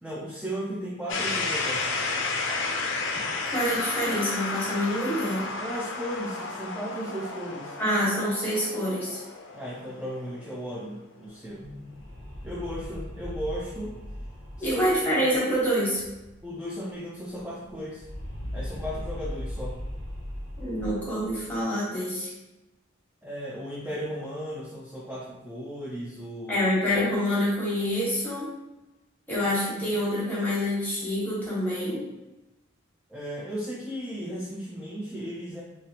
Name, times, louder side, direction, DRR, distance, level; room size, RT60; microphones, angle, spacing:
voice 1, 0.0-2.1 5.4-7.7 9.5-11.6 12.4-14.0 14.6-14.8 16.4-18.1 18.5-19.8 23.2-26.7 33.1-35.6, equal, 5° right, -6 dB, 0.4 m, -35 dB
sound 1, 1.1-10.9, left 3 dB, 65° left, 0.5 m, -32 dB
voice 2, 3.5-5.4 7.8-9.2 14.6-16.0 20.6-22.3 26.5-28.5 29.3-32.1, equal, 10° left, -7 dB, 1.3 m, -26 dB
sound 2, 11.3-16.6 16.9-17.0 17.3-21.6, equal, 80° right, 1.4 m, -39 dB
3.1 x 2.9 x 2.8 m, 0.99 s
head